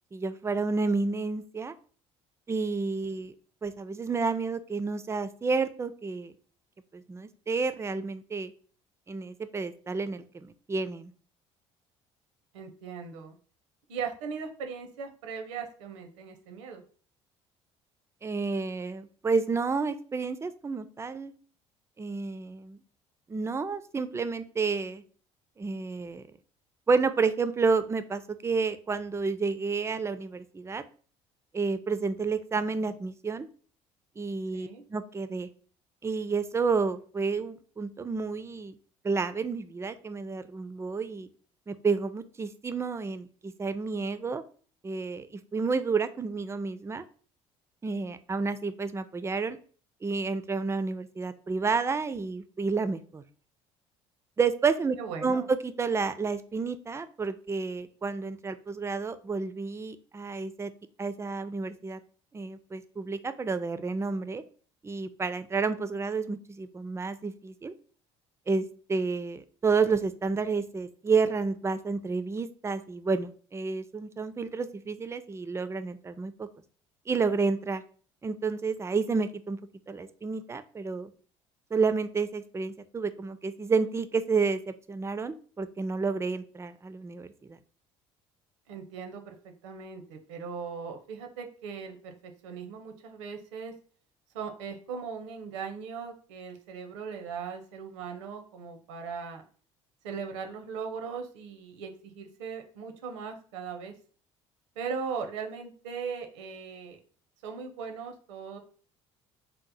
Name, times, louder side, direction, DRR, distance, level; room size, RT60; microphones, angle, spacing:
voice 1, 0.1-1.7 2.5-3.3 3.6-6.3 6.9-8.5 9.1-11.1 18.2-21.3 22.0-22.8 23.3-25.0 25.6-26.2 26.9-30.8 31.5-33.5 34.2-35.5 36.0-38.8 39.0-41.3 41.7-44.4 44.8-47.0 47.8-49.6 50.0-53.2 54.4-55.0 55.2-60.7 61.0-62.0 62.3-64.4 64.8-67.7 68.5-76.5 77.1-77.8 78.2-79.6 79.9-81.1 81.7-87.6, right 4 dB, 20° right, 11 dB, 0.3 m, -30 dB
voice 2, 12.5-13.4 13.9-16.8 34.5-34.8 55.0-55.5 88.7-93.7 94.3-99.4 100.0-103.9 104.8-107.0 107.4-108.6, right 6 dB, 80° right, 5 dB, 0.6 m, -39 dB
2.9 x 2.0 x 3.9 m, 0.42 s
hypercardioid pair, 65°, 15 cm